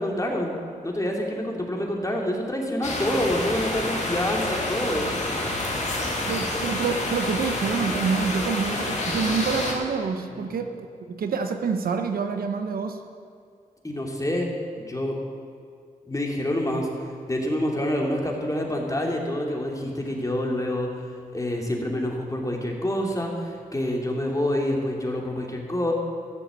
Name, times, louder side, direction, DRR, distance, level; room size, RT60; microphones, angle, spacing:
voice 1, 0.0-5.1 10.3-10.4 13.8-15.2 16.1-16.9 17.3-20.9 21.3-25.9, left 1 dB, 20° left, 0 dB, 2.8 m, -27 dB
sound 1, 2.8-9.7, left 2 dB, 50° left, 2.4 m, -28 dB
voice 2, 6.2-10.7 11.1-13.0, right 5 dB, 85° right, 6 dB, 0.9 m, -27 dB
14.0 x 7.0 x 7.6 m, 2.3 s
cardioid pair, 55°, 15 cm